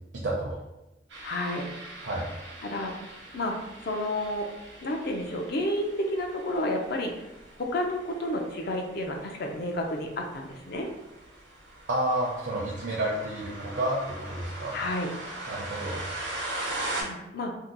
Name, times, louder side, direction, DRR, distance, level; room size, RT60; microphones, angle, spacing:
voice 1, 0.1-0.6 2.0-2.2 11.9-14.8 15.5-16.0, right 1 dB, 70° right, -3 dB, 0.6 m, -30 dB
sound 1, 1.1-17.0, right 1 dB, 90° right, 0.9 m, -41 dB
voice 2, 1.2-1.7 2.6-2.9 3.3-3.6 3.8-4.5 4.8-7.1 7.6-10.9 14.7-15.1 16.9-17.5, left 1 dB, 55° left, 2 dB, 0.5 m, -30 dB
2.7 x 2.2 x 3.8 m, 0.96 s
head